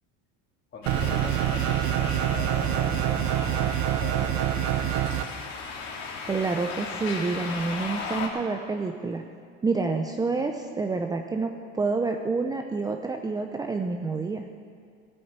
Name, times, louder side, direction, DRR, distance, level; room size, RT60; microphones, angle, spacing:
voice 1, 0.7-5.1, left 4 dB, 40° left, -1 dB, 3.0 m, -40 dB
sound 1, 0.8-8.3, left 5 dB, 65° left, 2.4 m, -37 dB
sound 2, 0.9-5.2, right 12 dB, 65° right, 0.7 m, -26 dB
voice 2, 6.3-9.2 9.6-14.5, right 4 dB, 15° right, 4 dB, 0.6 m, -28 dB
14.5 x 8.8 x 8.1 m, 2.2 s
cardioid pair, 125°, 29 cm